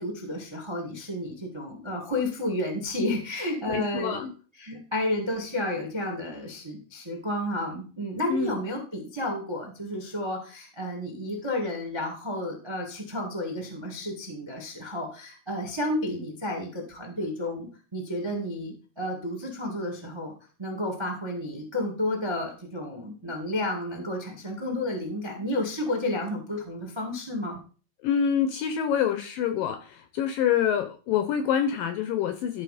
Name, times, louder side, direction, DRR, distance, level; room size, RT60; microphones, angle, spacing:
voice 1, 0.0-4.2 4.6-20.3 20.6-27.6, left 1 dB, 40° right, 2 dB, 0.3 m, -31 dB
voice 2, 3.7-4.3 8.3-8.6 28.0-32.6, left 8 dB, 75° left, 8 dB, 2.1 m, -26 dB
13.5 x 4.9 x 5.0 m, 0.39 s
omnidirectional pair, 4.9 m